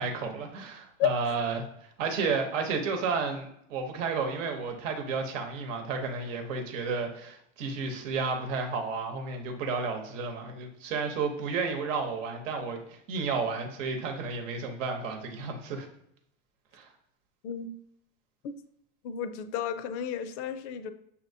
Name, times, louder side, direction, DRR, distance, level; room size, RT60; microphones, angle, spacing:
voice 1, 0.0-1.6 2.0-15.9 16.7-16.9, right 4 dB, 80° right, 4 dB, 0.9 m, -32 dB
voice 2, 19.0-20.9, left 9 dB, 65° left, 10 dB, 0.5 m, -32 dB
6.8 x 2.8 x 2.6 m, 0.72 s
supercardioid pair, 110°, 38 cm